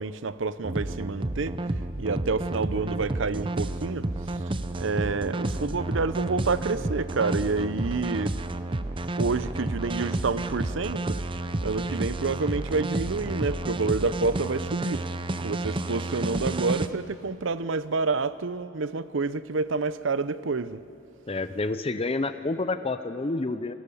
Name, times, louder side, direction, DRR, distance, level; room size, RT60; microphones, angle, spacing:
voice 1, 0.0-1.6 2.0-4.1 4.8-8.4 9.2-11.2 11.6-15.1 15.4-20.8, right 4 dB, 75° right, 0.7 m, -28 dB
sound 1, 0.6-16.9, right 2 dB, 25° right, 0.7 m, -31 dB
voice 2, 21.3-23.7, left 3 dB, 30° left, 0.6 m, -29 dB
29.0 x 18.5 x 7.2 m
head